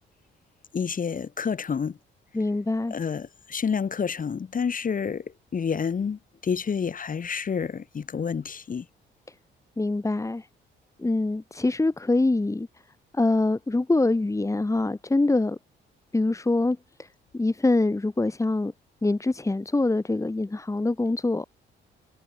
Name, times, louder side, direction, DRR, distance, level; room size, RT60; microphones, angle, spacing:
voice 1, 0.7-2.0 2.9-5.2 5.5-8.8, left 6 dB, 45° left, 4.7 m, -29 dB
voice 2, 2.3-2.9 9.8-10.5 11.0-12.7 13.1-15.6 16.1-17.1 17.3-18.7 19.0-21.5, left 2 dB, 15° left, 2.5 m, -24 dB
cardioid pair, 90°, 20 cm